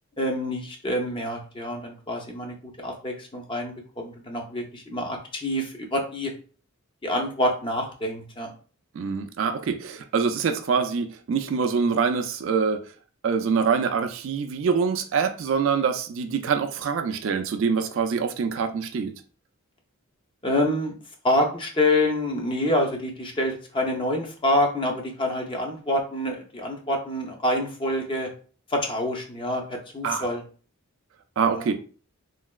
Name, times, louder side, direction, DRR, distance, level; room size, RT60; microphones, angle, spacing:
voice 1, 0.2-6.3 7.0-8.5 20.4-21.0 21.2-28.3 28.7-30.4 31.4-31.7, left 1 dB, 25° left, 0.5 m, -27 dB
voice 2, 9.0-12.8 13.2-19.1 30.0-30.3 31.4-31.7, right 5 dB, 60° right, 0.3 m, -25 dB
3.1 x 2.8 x 2.3 m
head